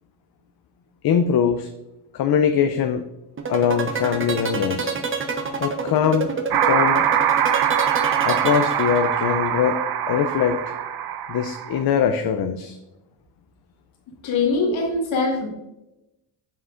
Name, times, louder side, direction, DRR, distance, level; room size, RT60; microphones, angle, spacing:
voice 1, 1.0-1.7 2.1-3.0 3.5-5.0 5.6-7.0 8.2-9.8 10.1-10.7 11.3-12.8, left 8 dB, 55° left, 7 dB, 0.6 m, -22 dB
sound 1, 3.4-9.3, right 4 dB, 25° right, 0.9 m, -27 dB
sound 2, 6.5-11.8, right 9 dB, 55° right, 0.6 m, -23 dB
voice 2, 14.2-15.5, left 3 dB, 85° left, -1 dB, 2.0 m, -22 dB
9.6 x 5.7 x 2.5 m, 0.94 s
cardioid pair, 85°, 45 cm